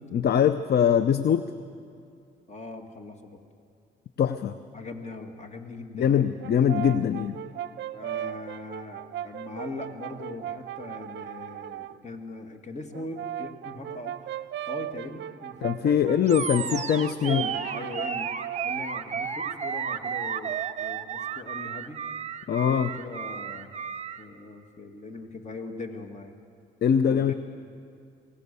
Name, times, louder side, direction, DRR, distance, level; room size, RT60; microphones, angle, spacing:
voice 1, 0.1-1.5 4.2-4.6 5.9-7.4 15.6-17.4 22.5-22.9 26.8-27.3, left 8 dB, 55° left, 12 dB, 0.6 m, -22 dB
voice 2, 2.5-3.4 4.7-6.2 7.9-14.3 14.7-15.6 15.9-16.3 17.2-18.3 18.6-22.0 22.5-23.7 24.2-26.3 27.1-27.3, left 3 dB, 35° left, 5 dB, 2.2 m, -40 dB
Brass instrument, 6.4-12.0 12.9-18.8, right 11 dB, 60° right, 0.6 m, -37 dB
Animal, 16.3-24.2, right 7 dB, 35° right, 0.8 m, -33 dB
24.0 x 17.5 x 6.9 m, 2.4 s
cardioid pair, 90°, 20 cm